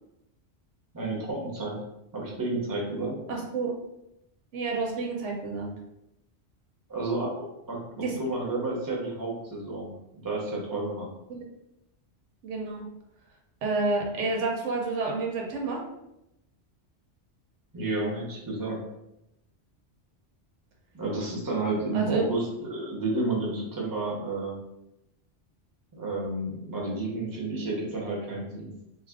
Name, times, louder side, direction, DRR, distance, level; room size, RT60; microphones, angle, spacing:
voice 1, 0.9-1.8 2.1-3.2 6.9-7.8 8.2-11.1 17.7-18.8 20.9-24.6 25.9-28.7, right 2 dB, 20° right, -2 dB, 0.7 m, -31 dB
voice 2, 3.3-3.7 4.5-5.7 8.0-8.2 11.3-11.4 12.4-12.8 13.6-15.8 21.9-22.2, right 3 dB, 85° right, 0 dB, 1.0 m, -29 dB
2.7 x 2.4 x 3.5 m, 0.85 s
omnidirectional pair, 1.2 m